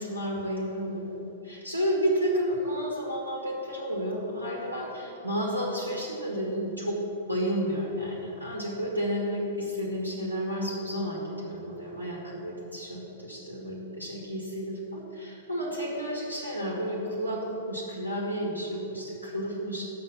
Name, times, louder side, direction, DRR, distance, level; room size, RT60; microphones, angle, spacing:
voice 1, 0.0-7.0 7.3-19.8, equal, 90° right, -3 dB, 1.7 m, -31 dB
6.4 x 6.3 x 7.2 m, 2.5 s
figure-of-eight pair, 105°, 0 cm